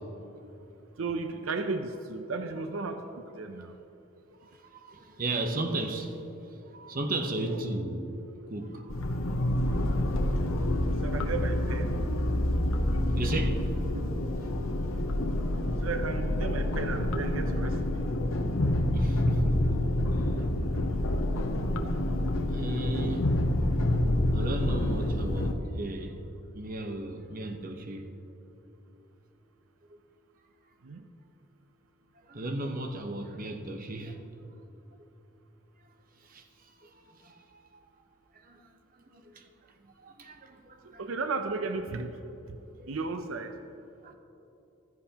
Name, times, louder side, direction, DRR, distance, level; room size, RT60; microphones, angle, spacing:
voice 1, 1.0-3.8 7.3-7.6 11.0-12.0 13.9-14.1 15.8-17.8 30.8-31.0 41.0-42.2 42.9-43.5, right 4 dB, 80° right, 7 dB, 0.6 m, -34 dB
voice 2, 4.4-8.1 8.5-9.1 9.4-9.7 13.0-13.7 18.9-20.3 22.5-23.3 24.3-26.2 26.5-28.1 32.1-34.5 36.2-37.8 38.3-39.5 39.8-41.0 42.7-42.9 44.0-44.1, right 2 dB, 45° right, 5 dB, 0.9 m, -36 dB
sound 1, 8.9-25.5, left 1 dB, 80° left, 0.9 m, -28 dB
15.5 x 14.0 x 2.9 m, 3.0 s
head